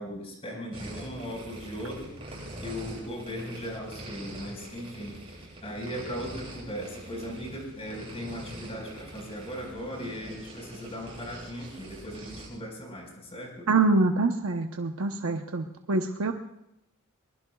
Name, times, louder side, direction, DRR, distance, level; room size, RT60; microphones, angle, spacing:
voice 1, 0.0-2.2 2.6-5.2 5.6-13.7, equal, 30° left, 0 dB, 4.9 m, -38 dB
sound 1, 0.7-12.5, right 1 dB, 25° right, 7.8 m, -44 dB
voice 2, 13.7-16.3, right 3 dB, 75° right, 4 dB, 0.9 m, -25 dB
23.0 x 21.0 x 2.4 m, 0.84 s
head